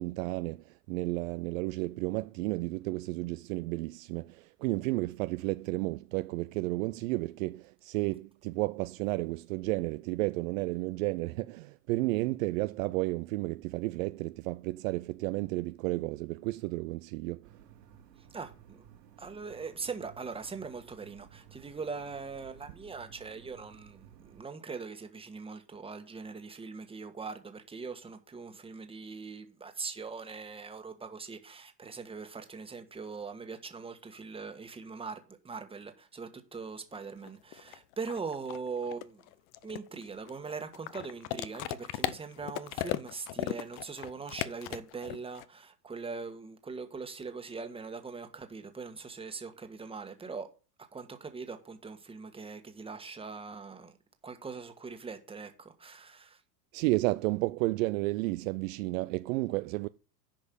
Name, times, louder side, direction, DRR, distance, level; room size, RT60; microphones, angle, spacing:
voice 1, 0.0-17.5 56.7-59.9, right 21 dB, 55° right, 0.5 m, -32 dB
sound 1, 17.4-24.4, right 9 dB, 90° right, 3.5 m, -56 dB
voice 2, 18.2-18.8 19.2-39.3 39.6-50.5 50.9-53.9 54.2-56.4, right 4 dB, 10° right, 1.5 m, -41 dB
sound 2, 36.9-37.0 37.2-45.4, left 15 dB, 45° left, 0.8 m, -37 dB
10.0 x 5.3 x 6.9 m
hypercardioid pair, 115°, 48 cm